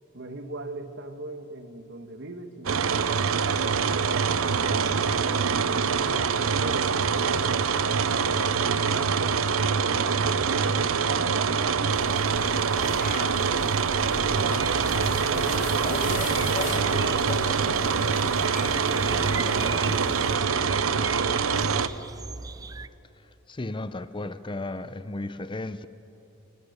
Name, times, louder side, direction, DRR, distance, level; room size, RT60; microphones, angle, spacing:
voice 1, 0.1-3.2 3.8-9.4 9.7-12.5 12.9-13.5 14.1-14.6 15.0-19.7 19.9-21.7, right 2 dB, 55° right, 8 dB, 1.5 m, -40 dB
sound 1, 2.7-21.9, right 6 dB, 75° right, 0.7 m, -25 dB
sound 2, 11.9-20.4, left 3 dB, 40° left, 1.1 m, -36 dB
sound 3, 14.6-22.9, right 4 dB, 20° right, 0.4 m, -39 dB
voice 2, 23.2-25.9, left 2 dB, 25° left, 13 dB, 0.6 m, -35 dB
25.5 x 19.0 x 6.7 m, 3.0 s
head